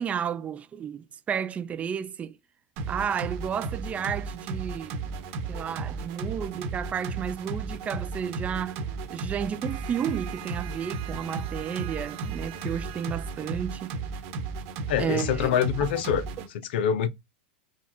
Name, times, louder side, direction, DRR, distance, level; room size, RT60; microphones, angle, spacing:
voice 1, 0.0-2.4 2.9-5.1 5.5-8.8 9.1-13.9 15.0-15.6, right 8 dB, 25° right, 0.4 m, -32 dB
sound 1, 2.8-16.5, right 4 dB, 55° right, 1.2 m, -34 dB
voice 2, 14.9-16.2 16.7-17.1, left 9 dB, 70° left, 0.6 m, -25 dB
4.1 x 2.4 x 4.2 m
hypercardioid pair, 115°, 6 cm